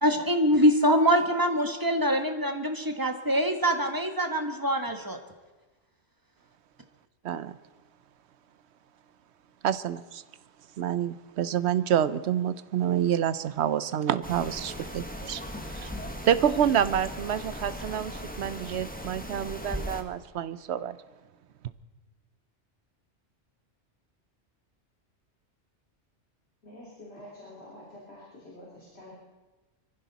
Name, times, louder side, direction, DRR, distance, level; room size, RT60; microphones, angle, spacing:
voice 1, 0.0-5.2, equal, 20° right, 5 dB, 1.3 m, -24 dB
voice 2, 7.2-7.6 9.6-10.2 10.8-16.0 16.2-21.0, right 9 dB, 70° right, 15 dB, 0.9 m, -28 dB
sound 1, 14.2-20.0, equal, 10° left, 1.2 m, -38 dB
voice 3, 26.6-29.1, left 1 dB, 60° left, -6 dB, 3.5 m, -47 dB
24.0 x 15.0 x 4.1 m, 1.2 s
omnidirectional pair, 1.2 m